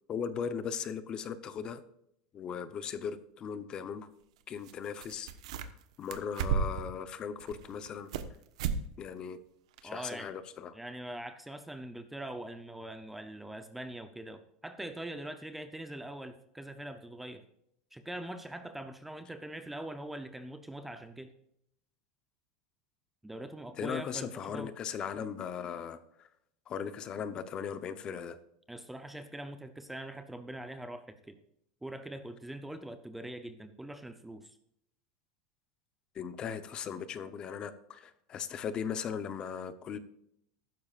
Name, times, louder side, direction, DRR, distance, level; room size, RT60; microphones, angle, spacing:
voice 1, 0.1-1.8 2.3-4.1 4.5-5.3 5.6-8.1 9.0-9.4 9.8-10.8 23.8-26.3 26.7-28.4 36.1-40.0, left 7 dB, 25° left, 12 dB, 0.8 m, -38 dB
sound 1, 4.6-4.7 5.0-5.8 6.1-6.9 7.4-8.3 8.6-8.8 9.2-9.3 9.8-9.9, right 7 dB, 85° right, 1.2 m, -33 dB
voice 2, 9.8-10.3 10.7-17.4 17.9-21.3 23.2-24.7 28.7-31.4 31.8-34.6, right 1 dB, 5° right, 9 dB, 0.6 m, -43 dB
14.5 x 12.5 x 2.5 m, 0.75 s
supercardioid pair, 160°, 3 cm